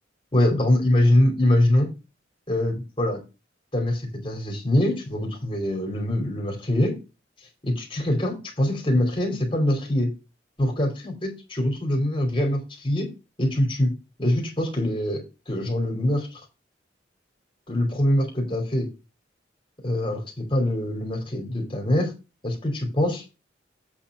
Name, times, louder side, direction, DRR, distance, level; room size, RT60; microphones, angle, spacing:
voice 1, 0.3-1.9 2.5-3.2 3.7-7.0 7.6-10.1 10.6-13.1 13.4-13.9 14.2-16.4 17.7-18.9 19.8-22.1 22.4-23.2, left 1 dB, 30° left, 1 dB, 2.8 m, -23 dB
8.2 x 4.4 x 5.9 m, 0.28 s
head